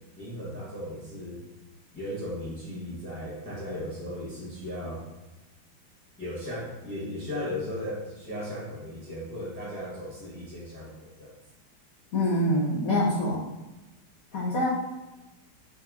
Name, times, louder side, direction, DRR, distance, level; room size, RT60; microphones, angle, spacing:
voice 1, 0.2-1.4 1.9-5.0 6.2-10.9 11.2-11.3, left 1 dB, 10° left, -8 dB, 0.9 m, -36 dB
voice 2, 12.1-13.4 14.3-14.7, left 1 dB, 60° left, -6 dB, 0.9 m, -25 dB
3.5 x 3.0 x 3.5 m, 1.0 s
omnidirectional pair, 2.3 m